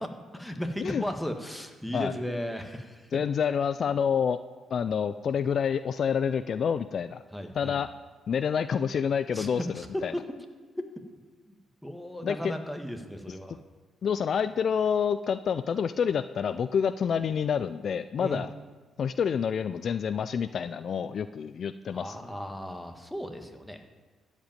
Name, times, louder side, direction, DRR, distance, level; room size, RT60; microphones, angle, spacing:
voice 1, 0.3-3.2 7.3-7.7 9.3-10.3 10.8-10.9 11.4-11.5 11.8-13.6 18.2-18.5 21.9-23.8, equal, 5° left, 5 dB, 1.4 m, -35 dB
voice 2, 3.1-4.4 4.7-7.2 7.5-7.9 8.3-10.1 12.2-12.5 14.0-18.5 19.0-22.2, left 7 dB, 55° left, 13 dB, 0.3 m, -28 dB
13.0 x 5.2 x 8.9 m, 1.4 s
cardioid pair, 90°, 0 cm